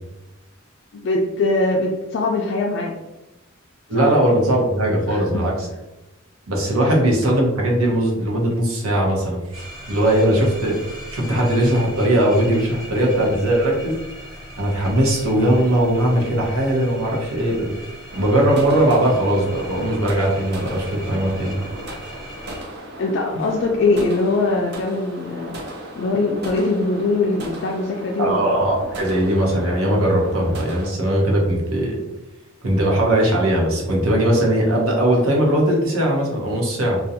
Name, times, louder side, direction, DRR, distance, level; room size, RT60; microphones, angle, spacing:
voice 1, 0.9-2.9 4.0-4.1 5.1-5.4 6.8-6.9 23.0-25.6 26.0-28.5, left 3 dB, 55° left, 0 dB, 0.3 m, -22 dB
voice 2, 3.9-5.7 6.5-14.0 14.6-17.7 18.2-21.6 28.2-32.0 32.6-37.0, right 1 dB, 90° right, -2 dB, 0.8 m, -19 dB
sound 1, 9.5-22.6, equal, 20° right, 0.9 m, -38 dB
sound 2, 18.1-30.9, right 1 dB, 50° right, 0.5 m, -36 dB
2.4 x 2.2 x 2.7 m, 1.0 s
head